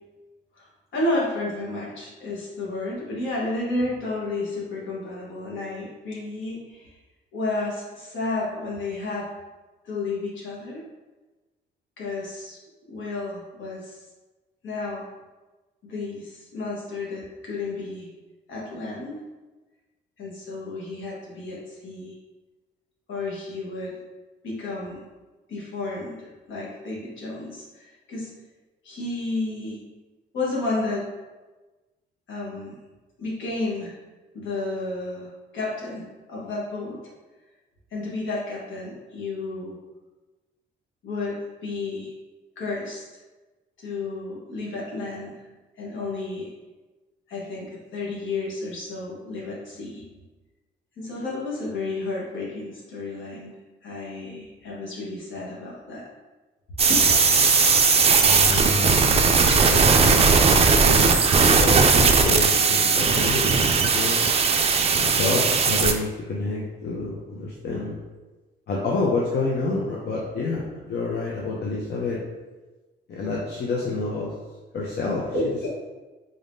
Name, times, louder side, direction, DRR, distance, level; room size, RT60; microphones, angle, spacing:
voice 1, 0.9-6.9 7.3-9.3 9.8-10.8 12.0-12.6 12.9-14.0 14.6-15.1 15.8-18.1 18.5-19.2 20.2-22.1 23.1-23.9 24.4-25.0 25.5-28.3 28.8-29.8 30.3-31.1 32.3-32.7 33.2-34.0 34.3-37.0 37.9-39.8 41.0-42.1 42.6-43.0 43.8-45.4 45.8-46.5 47.3-50.0 51.0-53.5 53.8-56.1 56.9-57.0 75.3-75.7, left 2 dB, 75° left, -4 dB, 1.3 m, -31 dB
sound 1, 56.8-65.9, right 5 dB, 30° right, 0.4 m, -18 dB
voice 2, 58.2-64.2 65.0-68.0 68.7-72.2 73.1-74.3 74.7-75.3, left 3 dB, 55° left, -4 dB, 0.7 m, -28 dB
3.8 x 3.5 x 2.6 m, 1.2 s
cardioid pair, 90°, 20 cm